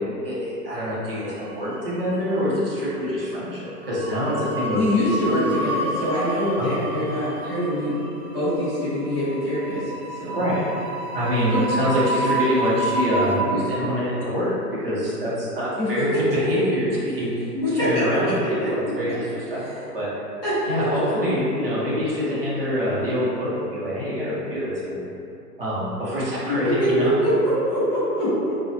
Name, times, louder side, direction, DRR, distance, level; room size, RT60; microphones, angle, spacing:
voice 1, 0.2-4.8 5.3-5.5 6.6-6.8 10.3-10.6 11.1-14.5 14.8-16.1 16.3-17.5 17.7-18.3 18.7-19.1 19.5-20.1 20.7-25.1 25.6-27.1, equal, 40° right, -9 dB, 0.5 m, -25 dB
sound 1, 1.3-2.1 2.4-2.7 3.8-13.4, right 1 dB, 85° right, 0.7 m, -30 dB
voice 2, 4.7-7.9 8.3-9.9 10.2-10.4 11.5-11.6 15.8-16.1 17.5-18.7 19.6-19.8 20.4-21.0 26.5-28.3, equal, 25° left, -21 dB, 0.6 m, -24 dB
2.6 x 2.0 x 2.6 m, 2.7 s
hypercardioid pair, 175°, 48 cm